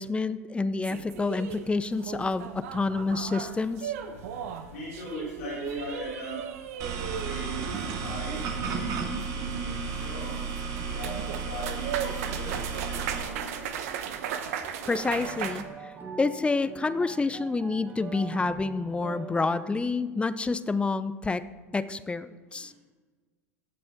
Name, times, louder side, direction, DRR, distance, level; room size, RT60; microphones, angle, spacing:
voice 1, 0.0-3.9 14.8-15.9 16.2-21.4 21.7-22.7, left 3 dB, 15° left, 14 dB, 0.5 m, -28 dB
sound 1, 0.8-15.6, right 8 dB, 65° right, 0.9 m, -37 dB
voice 2, 4.7-6.4 7.2-13.8 22.5-22.7, right 1 dB, 70° left, -5 dB, 3.9 m, -39 dB
sound 2, 6.8-13.2, right 5 dB, 45° right, 1.7 m, -33 dB
sound 3, 14.9-19.9, right 5 dB, 25° right, 1.4 m, -43 dB
15.0 x 7.6 x 3.6 m, 1.4 s
hypercardioid pair, 80°, 8 cm